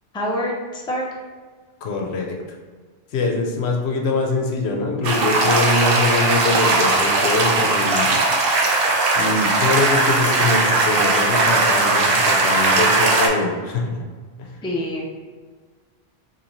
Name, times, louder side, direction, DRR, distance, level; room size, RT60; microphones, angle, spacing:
voice 1, 0.1-1.0 14.6-15.0, left 1 dB, 5° left, -3 dB, 0.4 m, -25 dB
voice 2, 1.8-2.4 3.1-8.2 9.1-14.1 14.4-14.6, left 3 dB, 80° left, 2 dB, 0.9 m, -23 dB
sound 1, 5.0-13.3, right 3 dB, 65° right, 0.8 m, -18 dB
4.1 x 2.9 x 2.9 m, 1.5 s
omnidirectional pair, 1.1 m